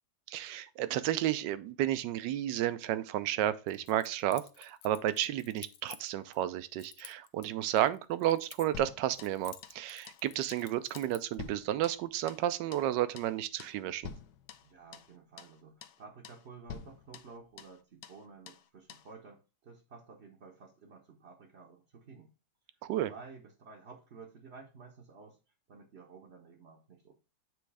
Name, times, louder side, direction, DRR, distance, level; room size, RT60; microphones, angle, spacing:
voice 1, 0.3-14.1 22.8-23.1, right 12 dB, 75° right, 1.2 m, -32 dB
Keys jangling, 3.7-6.4 6.8-8.9 9.1-11.4, left 10 dB, 90° left, 0.7 m, -52 dB
sound 1, 8.7-9.8 10.1-10.3 10.5-10.7 10.9-12.5 12.7-12.9 13.2-13.3 13.6-13.8 14.0-15.1 15.4-15.5 15.8-16.0 16.2-16.4 16.7-17.8 18.0-18.2 18.5-18.6 18.9-19.1, left 7 dB, 70° left, 1.1 m, -48 dB
voice 2, 14.6-22.3 23.1-25.4 25.7-27.1, right 4 dB, 45° right, 0.9 m, -52 dB
7.8 x 3.1 x 4.7 m
omnidirectional pair, 2.0 m